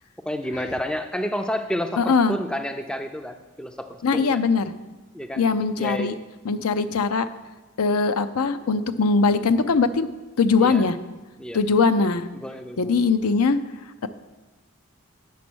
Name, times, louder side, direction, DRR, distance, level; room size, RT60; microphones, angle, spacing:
voice 1, 0.3-4.4 5.1-5.4 5.8-6.1 10.6-10.9 11.4-11.6 12.3-12.9, equal, 5° left, 7 dB, 0.4 m, -30 dB
voice 2, 2.0-2.4 4.0-4.7 5.4-6.1 6.4-7.3 7.8-10.1 10.4-11.0 11.5-12.3 12.8-13.6, left 4 dB, 90° left, 11 dB, 0.5 m, -21 dB
8.5 x 6.0 x 6.1 m, 1.2 s
head